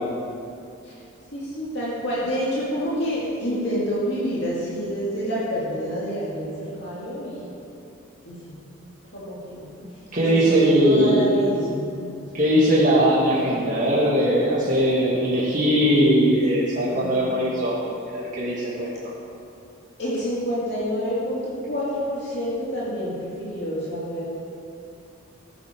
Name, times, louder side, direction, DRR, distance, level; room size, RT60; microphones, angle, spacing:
voice 1, 1.3-7.6 8.2-8.6 9.1-9.7 10.2-12.0 16.9-17.3 20.0-24.3, equal, 55° left, -8 dB, 2.6 m, -28 dB
voice 2, 10.1-11.2 12.3-17.8 18.1-18.9, equal, 40° right, -8 dB, 2.0 m, -20 dB
15.0 x 10.0 x 4.6 m, 2.6 s
head